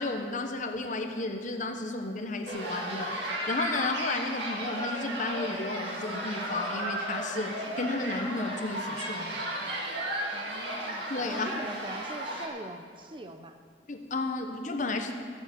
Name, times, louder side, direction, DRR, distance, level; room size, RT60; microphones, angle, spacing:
voice 1, 0.0-9.4 11.1-11.5 13.9-15.2, left 2 dB, 45° left, 5 dB, 1.0 m, -33 dB
sound 1, 2.5-12.5, right 1 dB, 80° right, 2.1 m, -34 dB
voice 2, 10.3-13.6, right 1 dB, 30° right, 7 dB, 0.6 m, -43 dB
13.5 x 6.8 x 8.3 m, 2.1 s
head